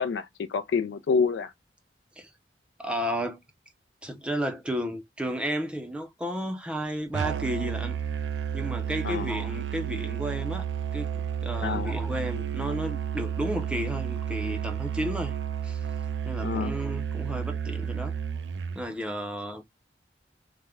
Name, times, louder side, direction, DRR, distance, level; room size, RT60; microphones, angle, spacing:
voice 1, 0.0-1.5 9.0-9.3 11.6-11.9 16.4-16.7, left 5 dB, 85° left, 0.4 m, -27 dB
voice 2, 2.8-3.4 4.0-8.0 8.5-10.6 10.9-15.3 15.6-15.8 16.3-18.1 18.7-19.6, equal, 5° right, 0.4 m, -32 dB
Musical instrument, 7.1-18.9, right 8 dB, 85° right, 0.4 m, -31 dB
3.5 x 2.1 x 3.2 m
head